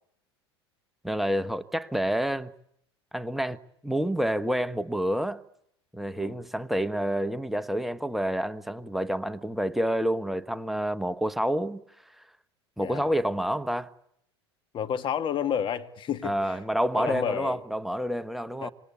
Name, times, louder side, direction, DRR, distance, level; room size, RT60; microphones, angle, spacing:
voice 1, 1.0-2.5 3.1-3.6 3.8-5.4 5.9-11.8 12.2-12.3 12.8-13.9 16.2-18.7, equal, ahead, 1.2 m, -28 dB
voice 2, 12.8-13.1 14.7-16.3 16.9-17.6 18.6-18.7, left 8 dB, 35° left, 2.0 m, -30 dB
27.0 x 26.0 x 8.4 m
figure-of-eight pair, 80°, 14 cm